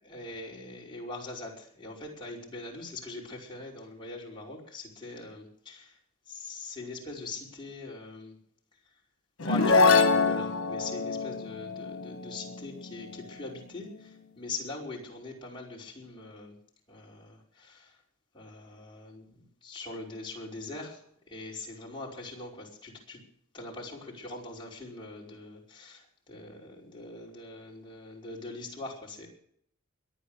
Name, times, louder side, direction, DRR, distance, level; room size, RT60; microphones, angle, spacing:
voice 1, 0.0-6.0 6.3-8.4 9.4-16.5 16.9-18.0 18.3-21.0 21.3-23.2 23.5-29.3, left 2 dB, 25° left, -3 dB, 5.4 m, -42 dB
sound 1, 9.4-13.0, left 4 dB, 85° left, 1.4 m, -25 dB
23.0 x 9.2 x 6.7 m, 0.66 s
head